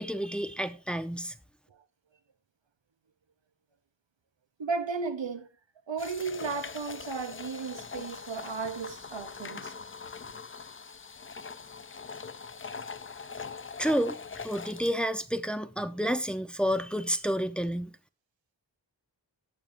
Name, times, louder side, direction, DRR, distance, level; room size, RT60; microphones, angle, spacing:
voice 1, 0.0-1.3 13.8-14.2 14.4-17.9, equal, ahead, 0.9 m, -30 dB
voice 2, 4.6-5.5 5.9-9.7, right 5 dB, 80° right, 1.0 m, -34 dB
sound 1, 6.0-14.9, left 5 dB, 30° left, 0.5 m, -42 dB
18.0 x 6.9 x 2.7 m
wide cardioid pair, 45°, 45 cm